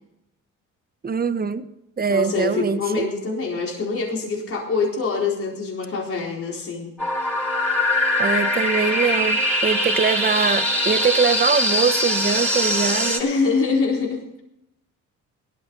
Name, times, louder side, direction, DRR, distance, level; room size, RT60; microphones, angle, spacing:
voice 1, 1.0-1.7 2.0-3.0 8.2-13.2, right 5 dB, 30° right, 11 dB, 1.2 m, -22 dB
voice 2, 2.1-6.9 13.2-14.4, left 4 dB, 50° left, -2 dB, 4.2 m, -24 dB
sound 1, 7.0-13.2, equal, 5° left, 4.8 m, -22 dB
17.5 x 13.0 x 4.1 m, 0.85 s
cardioid pair, 90°, 30 cm